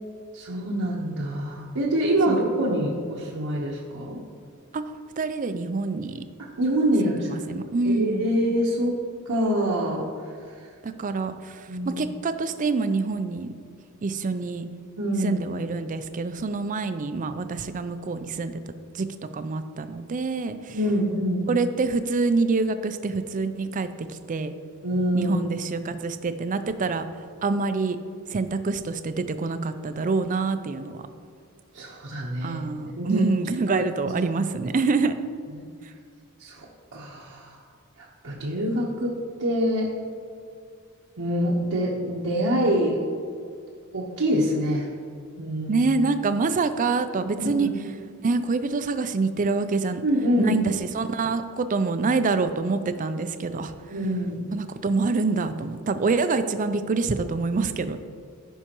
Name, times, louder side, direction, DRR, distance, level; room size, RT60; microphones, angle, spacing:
voice 1, 0.3-4.2 6.4-7.4 7.8-9.0 9.3-10.1 11.7-11.9 15.0-15.4 20.7-21.5 24.8-25.4 31.7-32.6 33.0-33.2 33.7-34.1 35.6-35.7 36.4-36.6 36.9-37.6 38.0-39.9 41.2-43.0 43.9-44.9 45.4-45.9 47.4-47.7 50.0-50.5 53.9-54.5, equal, 80° right, -5 dB, 1.1 m, -25 dB
voice 2, 5.2-6.2 7.0-8.3 10.8-13.5 14.0-14.6 15.2-18.6 18.9-19.1 19.3-20.8 21.5-24.5 25.1-27.1 27.4-28.0 28.3-31.0 32.4-35.2 45.7-47.7 48.2-50.0 50.4-53.7 54.5-58.0, right 3 dB, 35° right, 10 dB, 0.4 m, -26 dB
14.5 x 5.6 x 3.0 m, 2.3 s
head